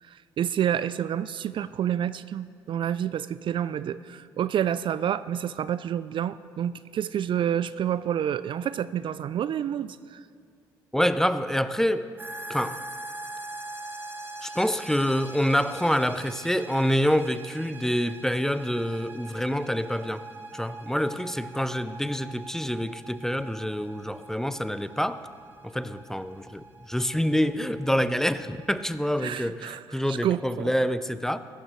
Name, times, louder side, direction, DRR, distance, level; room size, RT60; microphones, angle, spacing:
voice 1, 0.0-10.2 29.2-30.7, right 10 dB, 50° right, 16 dB, 0.4 m, -29 dB
voice 2, 10.9-12.1 12.5-12.8 14.4-20.2 20.5-25.2 25.6-31.4, equal, 5° left, 13 dB, 0.5 m, -27 dB
sound 1, 12.2-29.0, right 2 dB, 20° right, 1.9 m, -43 dB
16.0 x 13.0 x 3.1 m, 2.2 s
hypercardioid pair, 55°, 11 cm